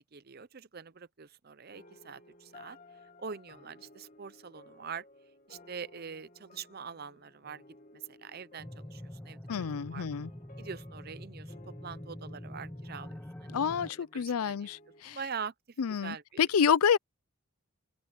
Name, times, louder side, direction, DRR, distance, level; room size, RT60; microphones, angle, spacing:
voice 1, 0.1-2.8 3.2-5.0 5.5-7.6 7.9-9.4 9.9-10.1 10.6-11.5 11.8-13.6 13.8-14.7 15.1-15.5 16.0-16.4, right 6 dB, 45° right, 0.6 m, -44 dB
sound 1, 1.7-15.0, left 2 dB, 35° left, 2.3 m, -57 dB
sound 2, 8.6-13.9, left 1 dB, 5° left, 0.4 m, -45 dB
voice 2, 9.5-10.3 13.5-15.2 15.8-17.0, left 7 dB, 80° left, 0.5 m, -28 dB
open air
head